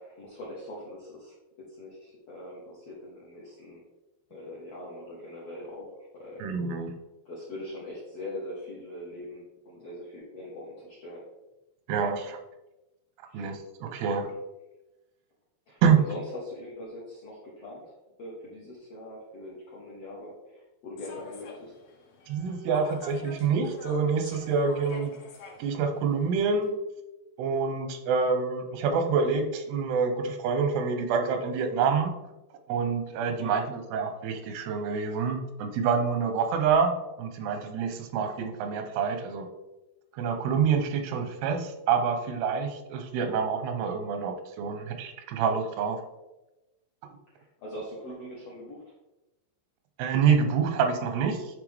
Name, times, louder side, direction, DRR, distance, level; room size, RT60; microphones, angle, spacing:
voice 1, 0.0-3.8 4.3-6.5 7.2-11.2 13.3-13.5 15.7-17.9 18.2-21.7 33.4-33.7 47.3-48.9, left 1 dB, 70° left, -6 dB, 1.4 m, -42 dB
voice 2, 6.4-7.0 11.9-12.4 13.3-14.3 15.8-16.0 22.3-25.2 25.6-26.8 27.4-32.2 32.7-39.5 40.1-46.0 50.0-51.4, right 6 dB, 85° right, 6 dB, 2.8 m, -27 dB
Human voice / Subway metro underground, 21.0-26.7, left 3 dB, 85° left, 3.1 m, -46 dB
9.8 x 3.5 x 3.4 m, 1.0 s
omnidirectional pair, 4.5 m